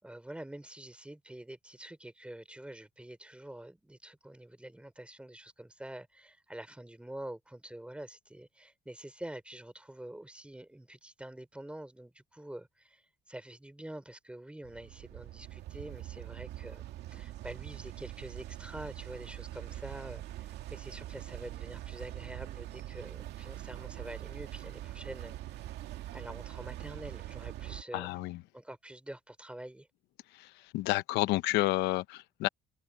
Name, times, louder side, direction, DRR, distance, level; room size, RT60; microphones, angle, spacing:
voice 1, 0.0-25.4 26.1-28.3 28.5-29.9, right 1 dB, 5° right, 3.5 m, -46 dB
sound 1, 14.6-27.8, right 14 dB, 80° right, 2.2 m, -43 dB
voice 2, 27.9-28.4 30.4-32.5, left 18 dB, 90° left, 0.9 m, -30 dB
cardioid pair, 110°, 17 cm